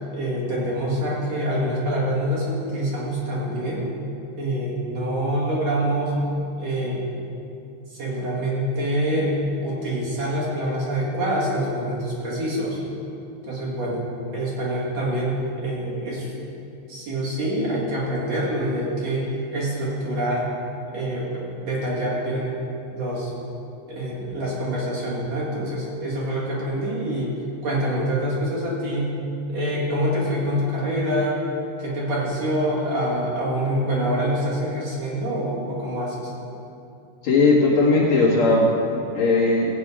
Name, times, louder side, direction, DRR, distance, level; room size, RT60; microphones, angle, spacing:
voice 1, 0.1-3.9 4.4-6.3 6.6-7.1 7.9-12.8 13.4-14.0 14.3-16.3 16.9-20.5 20.9-22.5 22.9-23.3 23.9-27.3 27.6-29.1 29.5-31.4 31.8-36.3, right 1 dB, 45° right, -6 dB, 2.6 m, -25 dB
voice 2, 37.2-39.8, left 3 dB, 55° left, -6 dB, 2.2 m, -18 dB
16.0 x 8.7 x 4.9 m, 2.7 s
omnidirectional pair, 5.2 m